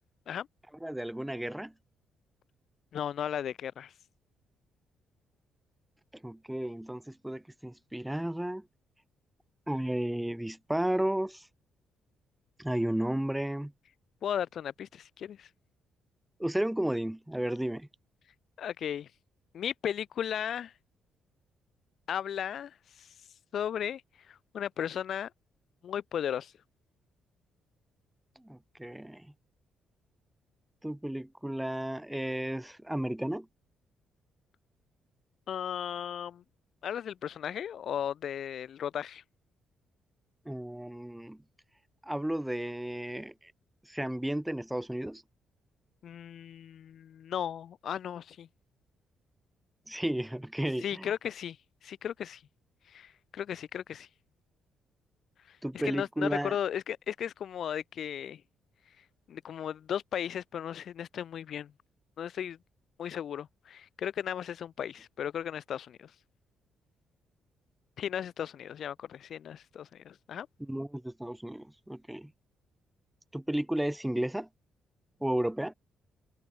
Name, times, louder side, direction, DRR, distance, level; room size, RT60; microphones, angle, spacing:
voice 1, 0.8-1.7 6.1-8.7 9.7-11.5 12.6-13.7 16.4-17.9 28.4-29.3 30.8-33.5 40.5-41.4 42.0-43.5 43.9-45.2 49.9-51.1 55.6-56.6 70.6-72.3 73.3-74.5 75.2-75.7, right 1 dB, 5° right, 0.5 m, -33 dB
voice 2, 2.9-3.9 14.2-15.5 18.6-19.1 19.5-20.7 22.1-23.1 23.5-24.0 24.3-25.3 25.8-26.5 35.5-36.4 36.8-39.2 46.0-48.5 50.8-51.6 51.8-52.4 52.9-54.1 55.5-58.4 59.3-61.7 62.2-62.6 63.0-66.1 68.0-70.5, left 9 dB, 65° left, 0.7 m, -36 dB
cardioid pair, 90°, 0 cm